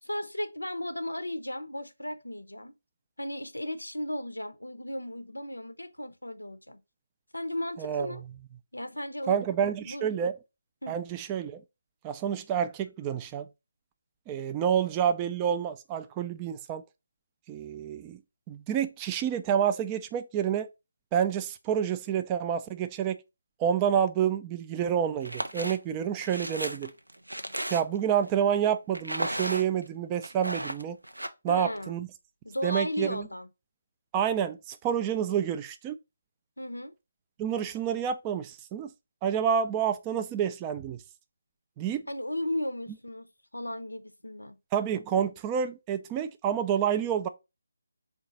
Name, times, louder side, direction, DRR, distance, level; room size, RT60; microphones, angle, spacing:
voice 1, 0.0-2.7 3.2-6.8 7.3-8.2 8.7-10.1 10.8-11.0 31.5-32.0 32.4-33.5 36.6-36.9 42.1-44.6 45.1-45.2, left 1 dB, 90° left, 0.4 m, -35 dB
voice 2, 7.8-8.2 9.3-10.3 10.9-11.6 12.0-13.5 14.3-16.8 17.5-18.2 18.5-20.7 21.1-23.2 23.6-26.9 27.7-31.0 31.4-32.1 32.6-33.3 34.1-36.0 37.4-38.9 39.2-41.0 41.8-42.0 44.7-47.3, right 8 dB, 20° right, 0.3 m, -28 dB
sound 1, 25.2-25.8 26.2-28.1 28.9-29.9 30.2-31.3, right 1 dB, 90° right, 0.6 m, -34 dB
3.8 x 2.3 x 4.0 m
figure-of-eight pair, 150°, 0 cm